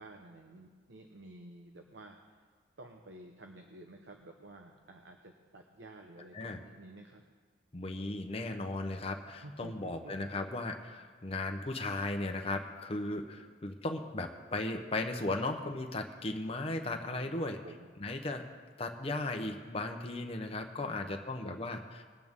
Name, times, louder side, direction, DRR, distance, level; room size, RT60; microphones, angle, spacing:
voice 1, 0.0-2.4 2.8-7.2 9.3-10.5 17.1-17.9 20.8-21.6, right 2 dB, 75° right, 4 dB, 0.9 m, -52 dB
voice 2, 7.7-17.6 18.0-18.5 18.8-22.0, left 2 dB, 30° left, 4 dB, 0.8 m, -36 dB
20.5 x 8.5 x 3.6 m, 1.5 s
head